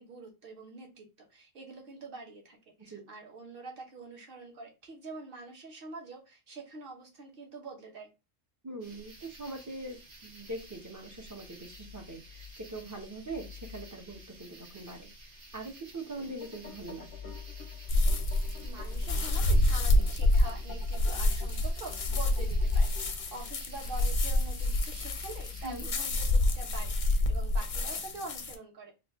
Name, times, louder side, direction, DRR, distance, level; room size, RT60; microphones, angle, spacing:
voice 1, 0.0-8.1 18.6-28.9, right 3 dB, 50° right, 2 dB, 1.1 m, -45 dB
voice 2, 8.6-15.1 15.5-17.4 25.6-25.9, right 2 dB, 25° right, 3 dB, 0.4 m, -42 dB
sound 1, 8.8-25.8, left 3 dB, 80° right, 1.5 m, -47 dB
sound 2, 15.9-23.5, left 4 dB, 90° left, 1.1 m, -51 dB
sound 3, 17.9-28.5, left 1 dB, 50° left, 0.6 m, -28 dB
3.9 x 2.4 x 2.8 m, 0.27 s
omnidirectional pair, 1.3 m